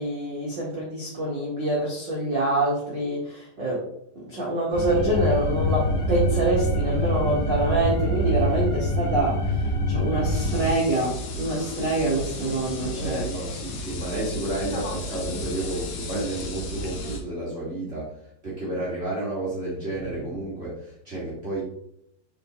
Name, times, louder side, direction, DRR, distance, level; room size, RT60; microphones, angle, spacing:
voice 1, 0.0-3.9 4.3-9.5 9.9-13.2, right 1 dB, 85° right, -6 dB, 1.0 m, -26 dB
sound 1, 4.7-10.7, equal, 35° left, 1.7 m, -25 dB
sound 2, 10.3-17.2, equal, 85° left, 1.5 m, -34 dB
voice 2, 12.9-21.6, right 1 dB, 45° right, -8 dB, 0.7 m, -31 dB
9.1 x 4.4 x 3.2 m, 0.72 s
omnidirectional pair, 5.2 m